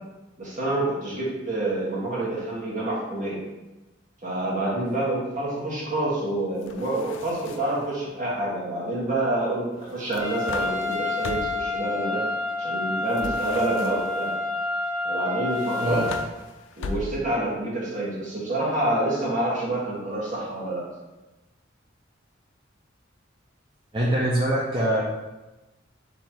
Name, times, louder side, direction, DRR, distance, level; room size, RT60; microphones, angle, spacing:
voice 1, 0.4-3.4 4.2-12.2 12.6-14.3 15.0-16.1 16.8-20.9, right 1 dB, 40° right, -6 dB, 1.6 m, -27 dB
sound 1, 6.6-7.9 9.9-11.7 13.1-14.3 15.5-17.4, left 3 dB, 70° left, 0.4 m, -39 dB
Trumpet, 10.2-16.2, left 2 dB, 15° left, 1.4 m, -28 dB
voice 2, 23.9-25.0, right 1 dB, 25° right, -6 dB, 0.6 m, -23 dB
3.7 x 3.2 x 4.4 m, 1.1 s
head